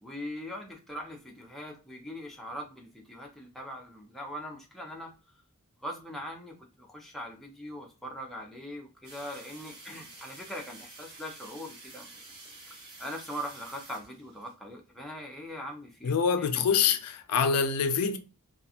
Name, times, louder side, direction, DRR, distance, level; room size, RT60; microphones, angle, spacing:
voice 1, 0.0-5.1 5.8-12.2 13.0-16.1 16.4-16.9, equal, ahead, 0.5 m, -41 dB
sound 1, 9.0-14.5, right 2 dB, 45° right, 1.0 m, -49 dB
voice 2, 16.0-18.2, left 6 dB, 85° left, 0.4 m, -25 dB
2.4 x 2.4 x 2.7 m
head